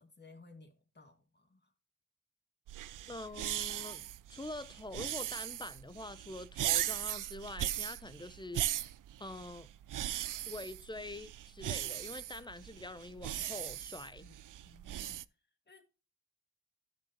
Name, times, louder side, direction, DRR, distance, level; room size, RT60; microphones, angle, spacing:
voice 1, 0.0-1.7 2.7-2.9 14.2-14.3 14.6-15.2 15.7-15.8, left 3 dB, 30° left, 2.5 m, -58 dB
sound 1, 2.7-15.2, right 12 dB, 70° right, 0.5 m, -38 dB
voice 2, 3.1-8.9 9.2-9.7 10.5-14.2, left 2 dB, 15° left, 0.7 m, -45 dB
12.5 x 6.4 x 2.8 m
cardioid pair, 45°, 33 cm